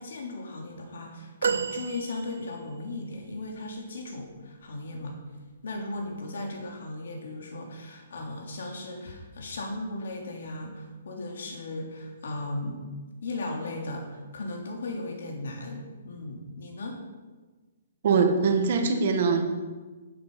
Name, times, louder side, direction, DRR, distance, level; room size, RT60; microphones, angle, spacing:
voice 1, 0.0-5.2 5.6-12.8 13.2-17.0, left 2 dB, 70° left, 1 dB, 3.2 m, -36 dB
sound 1, 1.4-2.8 3.6-3.7, right 6 dB, 85° right, 0.7 m, -31 dB
voice 2, 18.0-19.6, right 4 dB, 45° right, 4 dB, 1.8 m, -23 dB
11.0 x 9.5 x 5.5 m, 1.3 s
hypercardioid pair, 170°, 0 cm